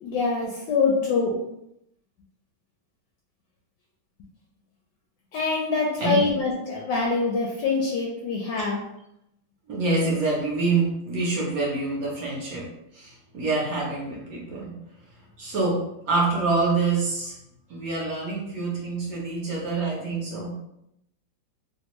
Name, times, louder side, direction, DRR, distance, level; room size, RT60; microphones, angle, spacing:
voice 1, 0.0-1.4 5.3-8.8, left 4 dB, 75° left, -2 dB, 1.1 m, -24 dB
voice 2, 9.7-12.7 12.9-14.7 15.4-15.8 16.1-17.3 17.7-20.5, right 3 dB, 60° right, -4 dB, 1.0 m, -26 dB
3.4 x 2.2 x 2.9 m, 0.80 s
omnidirectional pair, 2.3 m